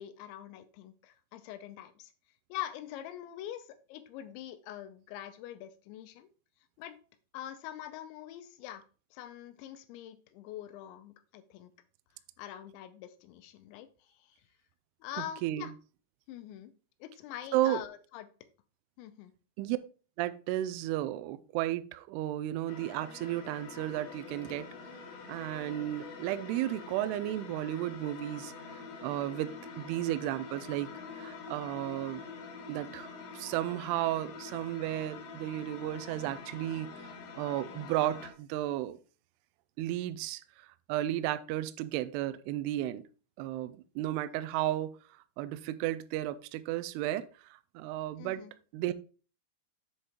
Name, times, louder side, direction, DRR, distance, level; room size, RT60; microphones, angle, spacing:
voice 1, 0.0-2.1 2.5-6.3 6.8-7.0 7.3-8.8 9.1-11.7 12.4-14.4 15.0-15.7 16.3-16.7 17.0-18.3 19.0-19.3 48.2-48.5, left 12 dB, 85° left, 10 dB, 3.0 m, -44 dB
voice 2, 15.2-15.7 17.5-17.8 19.6-19.8 20.2-24.7 25.3-28.5 29.0-32.3 32.7-36.9 37.4-39.0 39.8-40.4 40.9-43.0 43.4-44.9 45.4-47.3 47.8-48.4 48.7-48.9, right 14 dB, 85° right, 13 dB, 2.3 m, -33 dB
sound 1, 22.7-38.3, left 5 dB, 65° left, 2.4 m, -46 dB
7.9 x 6.5 x 2.9 m, 0.36 s
omnidirectional pair, 5.2 m